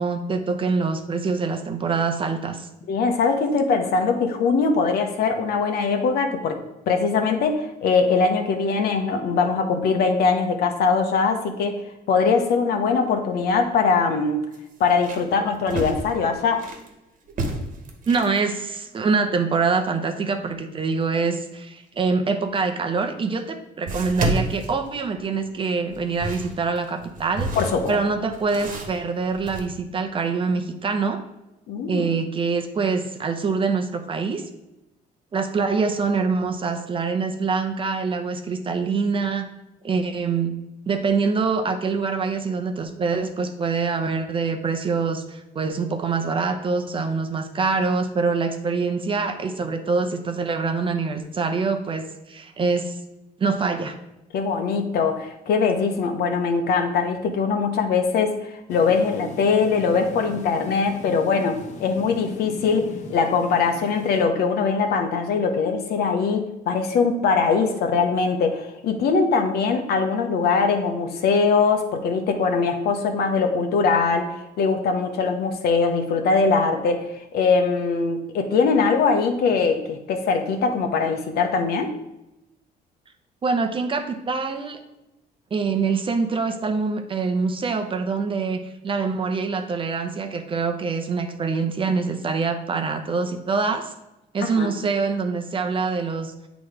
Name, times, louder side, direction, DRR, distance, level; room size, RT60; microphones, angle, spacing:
voice 1, 0.0-2.7 18.1-27.5 27.9-31.2 31.9-34.4 35.3-39.5 39.8-40.5 40.9-53.0 53.4-54.0 83.4-84.8 85.5-93.9 94.3-96.3, right 4 dB, 30° right, 6 dB, 0.7 m, -25 dB
voice 2, 2.9-11.8 12.1-14.4 14.8-16.6 27.5-28.0 31.7-32.2 54.3-81.9 94.4-94.7, left 5 dB, 70° left, 5 dB, 0.9 m, -22 dB
sound 1, 13.3-13.5 13.9-14.0 14.5-16.9 17.3-18.4 22.6-22.7 23.9-25.4 25.9-29.6, right 1 dB, 50° right, 1.3 m, -30 dB
sound 2, 58.7-64.2, left 4 dB, 45° left, 0.9 m, -39 dB
8.5 x 3.1 x 4.8 m, 0.92 s
cardioid pair, 110°, 17 cm